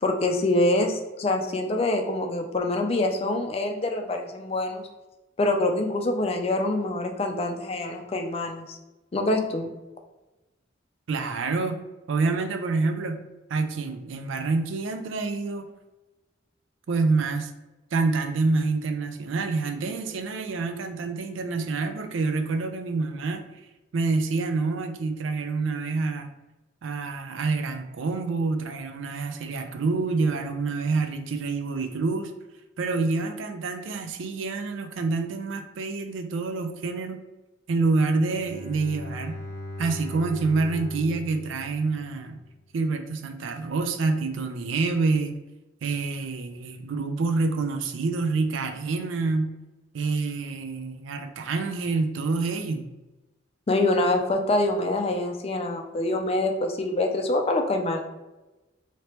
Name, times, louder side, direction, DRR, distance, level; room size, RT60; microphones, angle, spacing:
voice 1, 0.0-4.8 5.4-8.8 9.1-9.7 53.7-58.0, left 2 dB, 30° left, 3 dB, 0.4 m, -25 dB
voice 2, 11.1-11.8 12.1-13.2 13.5-15.7 16.9-17.5 17.9-23.4 23.9-26.3 26.8-32.3 32.8-37.2 37.7-39.4 39.8-42.4 42.7-45.4 45.8-49.5 49.9-52.9, right 3 dB, 80° right, 8 dB, 0.4 m, -27 dB
Bowed string instrument, 38.3-42.6, left 2 dB, 85° left, 0.6 m, -39 dB
3.2 x 2.8 x 2.9 m, 1.0 s
head